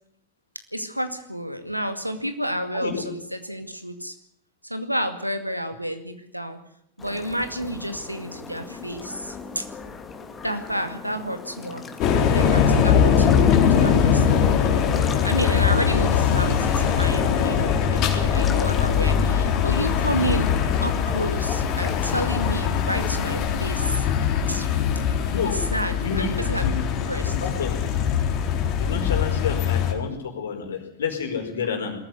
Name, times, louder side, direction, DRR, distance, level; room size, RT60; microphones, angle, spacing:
voice 1, 0.7-4.1 4.6-6.6 7.0-9.6 10.4-11.8 12.3-14.4 15.2-24.1 24.5-24.7 25.4-26.8 27.1-27.3, right 1 dB, 90° right, 7 dB, 2.3 m, -30 dB
sound 1, 7.0-23.4, left 4 dB, 20° left, 2.7 m, -37 dB
sound 2, 12.0-29.9, left 7 dB, 40° left, 3.8 m, -21 dB
voice 2, 26.0-26.7 27.2-27.8 28.8-31.9, left 6 dB, 65° left, 4 dB, 4.9 m, -29 dB
21.0 x 14.5 x 9.8 m, 0.72 s
figure-of-eight pair, 90°, 0 cm